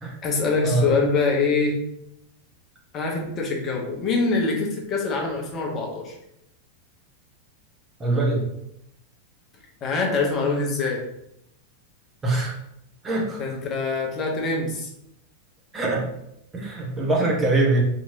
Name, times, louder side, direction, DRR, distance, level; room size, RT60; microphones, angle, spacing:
voice 1, 0.2-1.8 2.9-6.2 9.8-11.0 13.4-14.9, left 3 dB, 30° left, -1 dB, 0.8 m, -24 dB
voice 2, 8.0-8.5 12.2-12.6 13.0-13.4 15.7-16.0 16.5-17.8, right 2 dB, 15° right, -1 dB, 0.8 m, -23 dB
3.0 x 2.7 x 2.6 m, 0.79 s
figure-of-eight pair, 90°, 0 cm